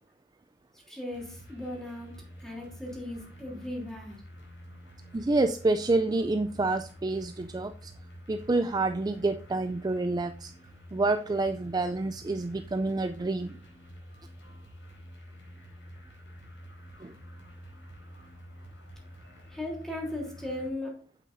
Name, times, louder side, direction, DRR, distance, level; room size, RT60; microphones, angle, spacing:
voice 1, 0.9-2.1 2.4-4.2 19.5-20.9, left 1 dB, 5° left, -2 dB, 3.1 m, -37 dB
sound 1, 1.1-20.7, equal, 80° left, 4.5 m, -49 dB
voice 2, 5.1-7.9 8.3-10.5 10.9-13.6 17.0-17.2, right 2 dB, 20° right, 9 dB, 0.4 m, -28 dB
8.5 x 8.3 x 2.6 m, 0.44 s
head